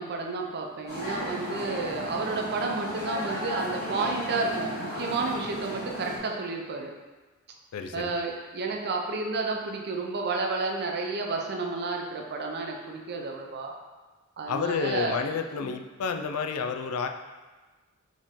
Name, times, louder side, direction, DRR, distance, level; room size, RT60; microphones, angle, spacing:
voice 1, 0.0-6.9 7.9-13.7 14.4-15.2, right 3 dB, 50° right, 1 dB, 0.6 m, -31 dB
sound 1, 0.9-6.2, equal, 45° left, 1.4 m, -34 dB
voice 2, 7.7-8.1 14.5-17.1, left 5 dB, 75° left, 6 dB, 0.4 m, -30 dB
4.3 x 3.0 x 3.6 m, 1.2 s
head